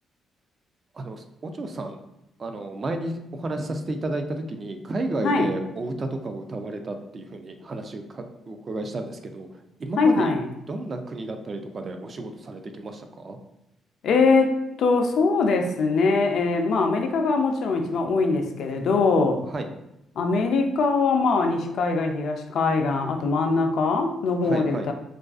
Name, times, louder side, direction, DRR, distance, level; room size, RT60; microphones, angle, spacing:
voice 1, 1.0-2.0 2.4-9.5 9.8-10.3 10.7-13.4 19.5-19.7 24.4-24.9, right 2 dB, 40° right, 6 dB, 0.3 m, -32 dB
voice 2, 10.0-10.4 14.0-14.5 14.8-19.4 20.2-24.9, left 4 dB, 70° left, 4 dB, 0.3 m, -22 dB
2.4 x 2.3 x 2.4 m, 0.88 s
cardioid pair, 90°, 0 cm